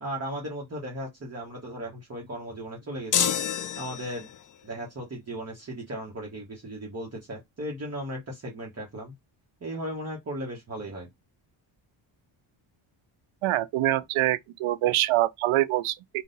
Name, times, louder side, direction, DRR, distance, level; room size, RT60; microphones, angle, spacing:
voice 1, 0.0-3.3 3.8-4.3 4.6-9.1 9.6-11.1, right 1 dB, 30° right, 1.3 m, -36 dB
sound 1, 3.1-4.4, left 8 dB, 40° left, 0.6 m, -27 dB
voice 2, 13.4-16.2, right 15 dB, 75° right, 0.6 m, -25 dB
3.9 x 2.6 x 4.0 m
cardioid pair, 95°, 50 cm